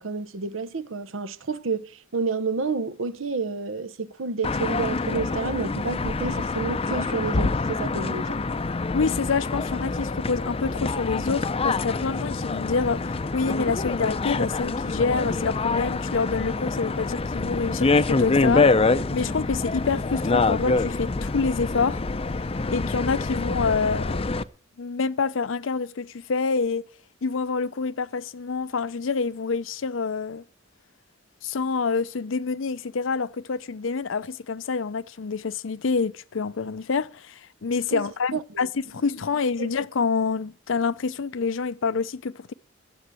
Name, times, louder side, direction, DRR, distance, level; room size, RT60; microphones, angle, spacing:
voice 1, 0.0-8.4 37.9-38.7 39.6-39.7, right 4 dB, 80° right, 0.9 m, -30 dB
sound 1, 4.4-24.4, left 3 dB, 30° left, 0.5 m, -26 dB
voice 2, 8.9-22.0 22.7-24.3 24.8-26.8 27.2-30.4 31.4-42.5, left 4 dB, 70° left, 0.6 m, -27 dB
12.5 x 7.9 x 7.5 m
head